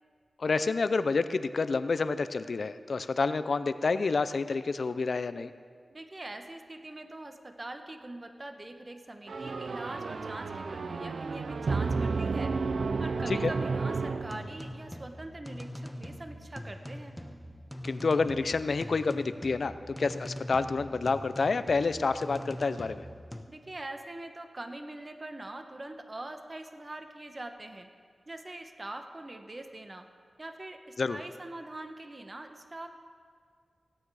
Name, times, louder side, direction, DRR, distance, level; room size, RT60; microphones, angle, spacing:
voice 1, 0.4-5.5 13.3-13.5 17.8-23.0 31.0-31.2, left 4 dB, 65° left, 13 dB, 0.5 m, -29 dB
voice 2, 5.9-12.5 13.0-17.2 23.5-27.9 28.3-30.1 30.4-32.9, right 2 dB, 35° right, 6 dB, 1.0 m, -43 dB
sound 1, 9.3-14.8, right 4 dB, 75° right, 0.5 m, -32 dB
sound 2, 14.2-23.4, equal, 5° left, 0.9 m, -43 dB
17.0 x 9.0 x 4.8 m, 2.1 s
cardioid pair, 60°, 0 cm